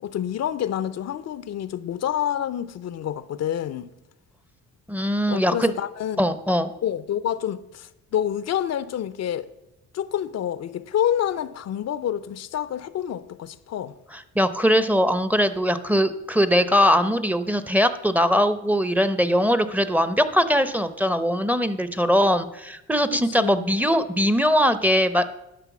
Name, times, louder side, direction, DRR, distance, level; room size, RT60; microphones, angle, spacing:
voice 1, 0.0-3.9 5.3-6.3 6.8-9.5 9.9-13.9 23.1-23.7, left 10 dB, 60° left, 0.6 m, -28 dB
voice 2, 4.9-5.7 6.2-6.7 14.4-25.2, equal, 5° right, 0.7 m, -21 dB
11.0 x 5.4 x 7.1 m
cardioid pair, 90°, 30 cm